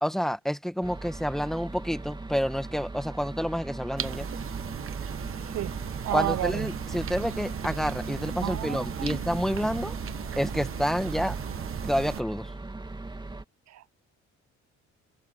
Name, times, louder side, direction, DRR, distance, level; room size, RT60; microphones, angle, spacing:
voice 1, 0.0-4.3 6.1-9.9 10.4-11.4 11.8-12.5, equal, ahead, 1.6 m, -29 dB
sound 1, 0.8-13.4, right 2 dB, 15° right, 1.8 m, -39 dB
sound 2, 4.0-12.2, right 9 dB, 45° right, 0.9 m, -36 dB
voice 2, 5.4-5.8 6.0-6.7 8.4-9.2 13.7-14.0, right 14 dB, 60° right, 0.5 m, -32 dB
Wind instrument woodwind instrument, 7.0-12.6, left 8 dB, 55° left, 7.3 m, -51 dB
cardioid pair, 90°, 30 cm